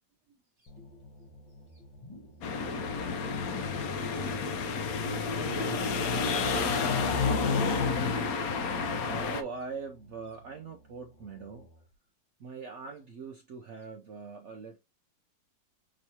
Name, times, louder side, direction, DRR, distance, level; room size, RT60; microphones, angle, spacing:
voice 1, 0.6-1.0 1.5-1.8 5.5-7.3 9.0-11.7 12.4-14.8, right 4 dB, 70° right, 0.6 m, -43 dB
sound 1, 0.7-11.9, right 1 dB, 80° left, 1.8 m, -56 dB
sound 2, 1.9-2.4 2.7-3.0 3.4-3.9 4.3-4.7 5.3-5.9 6.1-6.6 7.0-7.6 7.9-8.0, left 3 dB, 35° left, 0.5 m, -48 dB
sound 3, 2.4-9.4, left 4 dB, 65° left, 0.9 m, -30 dB
6.3 x 3.0 x 2.7 m
omnidirectional pair, 2.0 m